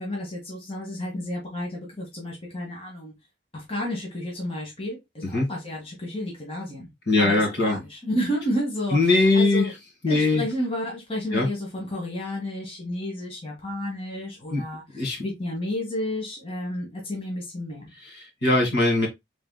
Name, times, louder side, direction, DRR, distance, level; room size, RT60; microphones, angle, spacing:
voice 1, 0.0-3.1 3.5-6.9 7.2-9.7 10.1-17.9, left 1 dB, 30° left, 1.3 m, -31 dB
voice 2, 7.1-7.8 8.9-9.7 10.0-10.4 11.3-11.5 14.5-14.6 14.9-15.2 18.0-19.1, left 2 dB, 65° left, 1.9 m, -21 dB
4.8 x 3.6 x 2.2 m
head